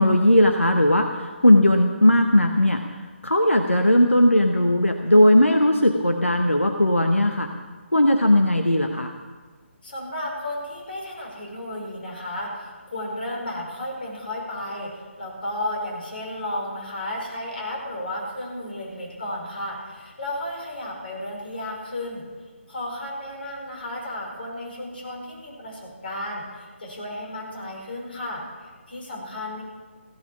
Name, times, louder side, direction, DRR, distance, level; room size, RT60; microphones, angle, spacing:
voice 1, 0.0-2.8 3.2-7.5 7.9-9.1, left 1 dB, 90° left, 5 dB, 1.1 m, -18 dB
voice 2, 9.8-22.2 22.7-29.6, left 1 dB, 50° left, -1 dB, 5.1 m, -33 dB
16.0 x 9.3 x 7.1 m, 1.4 s
figure-of-eight pair, 145°, 7 cm